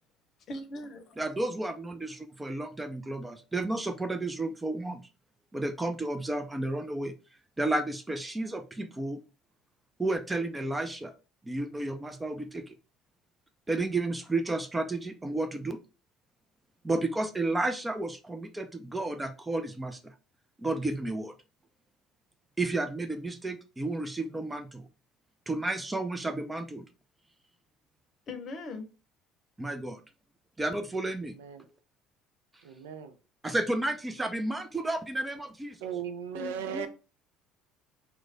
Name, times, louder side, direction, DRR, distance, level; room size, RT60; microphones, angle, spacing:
voice 1, 0.5-1.2 28.3-28.9 36.3-36.9, left 2 dB, 50° left, 0.7 m, -39 dB
voice 2, 1.2-5.0 5.5-7.1 7.6-9.2 10.0-11.1 11.4-12.7 13.7-15.8 16.8-20.1 20.6-21.3 22.6-24.9 25.5-26.8 29.6-30.0 30.6-31.4 33.4-35.8, right 2 dB, 15° right, 0.5 m, -32 dB
voice 3, 31.3-31.7 32.6-33.1 35.8-36.9, right 8 dB, 85° right, 0.5 m, -37 dB
3.1 x 2.2 x 3.8 m
hypercardioid pair, 65°, 0 cm